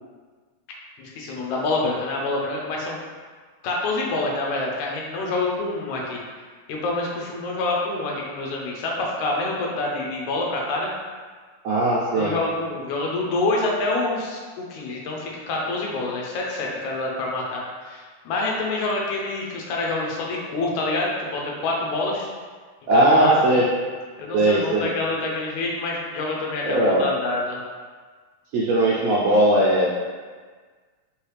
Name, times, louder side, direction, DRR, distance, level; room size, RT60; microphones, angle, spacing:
voice 1, 1.0-3.0 3.6-6.2 6.7-10.9 12.2-22.3 22.9-23.5 24.2-27.6, left 2 dB, 80° left, -2 dB, 2.0 m, -26 dB
voice 2, 11.6-12.3 22.9-23.7 24.3-24.9 26.6-27.1 28.5-30.0, right 1 dB, 80° right, -5 dB, 1.5 m, -19 dB
4.6 x 3.2 x 3.2 m, 1.5 s
omnidirectional pair, 3.5 m